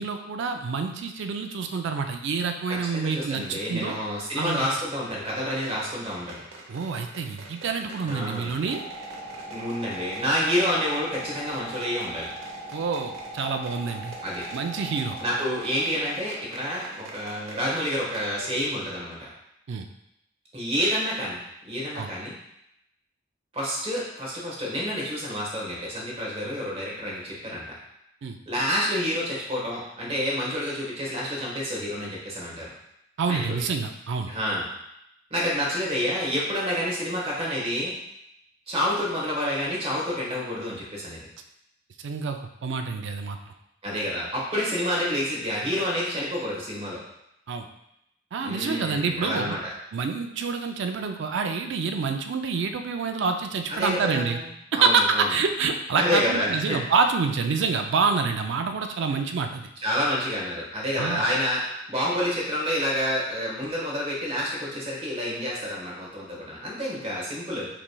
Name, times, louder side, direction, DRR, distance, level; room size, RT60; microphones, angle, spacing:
voice 1, 0.0-4.0 4.4-4.7 6.7-8.8 12.7-14.1 14.5-15.2 19.7-19.9 21.9-22.1 28.2-28.4 33.2-34.3 42.0-43.4 47.5-47.7 48.3-49.6 49.9-54.4 54.8-59.7 61.0-61.2, right 5 dB, 60° right, 5 dB, 0.4 m, -27 dB
voice 2, 2.7-6.4 8.0-8.5 9.5-12.3 14.2-14.4 15.2-19.3 20.5-21.4 21.6-22.3 23.5-27.7 28.5-32.7 33.3-33.5 34.3-34.7 35.3-37.9 38.7-41.2 43.8-47.0 48.4-49.7 53.7-54.4 54.7-55.3 56.0-56.8 59.8-61.6 61.9-67.7, equal, 30° right, -4 dB, 1.3 m, -28 dB
sound 1, 5.5-18.8 19.1-19.2, right 2 dB, 80° right, 0.8 m, -45 dB
sound 2, 8.7-17.3, right 1 dB, ahead, 1.3 m, -41 dB
5.9 x 3.1 x 2.2 m, 0.80 s
head